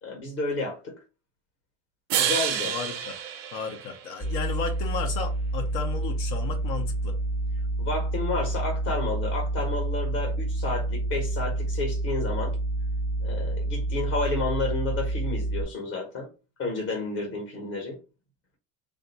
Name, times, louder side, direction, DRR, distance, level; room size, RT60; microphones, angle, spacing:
voice 1, 0.0-0.9 2.2-2.7 7.8-12.5 13.2-16.3 16.6-18.0, left 2 dB, 35° left, 1.1 m, -31 dB
sound 1, 2.1-4.4, right 9 dB, 35° right, 0.5 m, -29 dB
voice 2, 2.6-3.2 3.5-7.2, left 6 dB, 60° left, 0.9 m, -34 dB
sound 2, 4.2-15.6, right 2 dB, 5° left, 0.6 m, -28 dB
3.5 x 2.6 x 4.0 m
cardioid pair, 175°, 41 cm